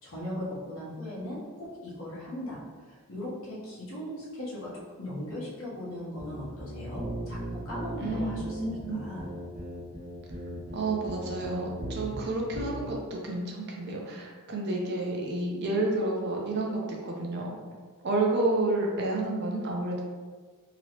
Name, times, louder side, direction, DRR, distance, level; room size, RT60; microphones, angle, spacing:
voice 1, 0.0-2.6 2.8-9.3, left 1 dB, 60° left, -6 dB, 1.0 m, -38 dB
sound 1, 6.2-12.2 12.5-12.8, right 1 dB, 75° right, 1.1 m, -38 dB
voice 2, 8.0-9.0 10.7-17.5 18.0-20.0, right 2 dB, 50° right, -1 dB, 0.5 m, -30 dB
3.0 x 2.8 x 2.9 m, 1.5 s
head